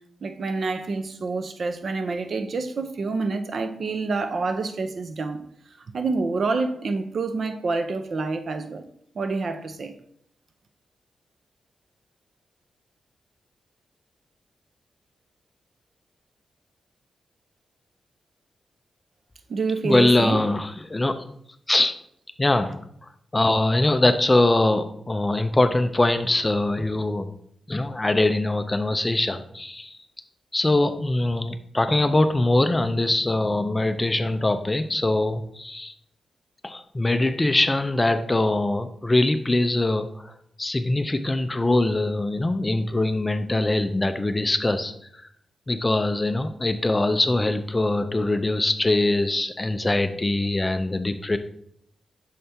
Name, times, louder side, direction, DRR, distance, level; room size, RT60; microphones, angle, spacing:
voice 1, 0.2-5.4 5.9-8.8 9.1-9.9 19.5-20.4, right 3 dB, 55° right, 8 dB, 0.6 m, -27 dB
voice 2, 19.8-21.2 21.7-21.9 22.4-22.8 23.3-27.3 27.7-30.0 30.5-35.9 36.6-44.9 45.7-51.4, left 2 dB, 20° left, 9 dB, 0.4 m, -22 dB
6.5 x 4.3 x 3.3 m, 0.68 s
wide cardioid pair, 115°, 0 cm